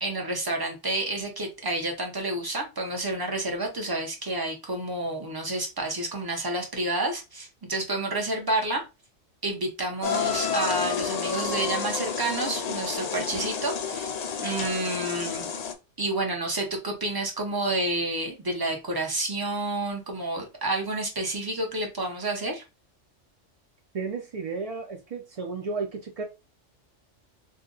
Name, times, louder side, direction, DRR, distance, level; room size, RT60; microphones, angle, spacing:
voice 1, 0.0-8.8 9.4-15.5 16.0-22.6, right 2 dB, 25° right, 0.7 m, -29 dB
sound 1, 10.0-15.7, left 6 dB, 75° left, 0.3 m, -30 dB
voice 2, 23.9-26.2, right 4 dB, 65° right, 0.3 m, -33 dB
2.6 x 2.2 x 3.8 m
omnidirectional pair, 1.2 m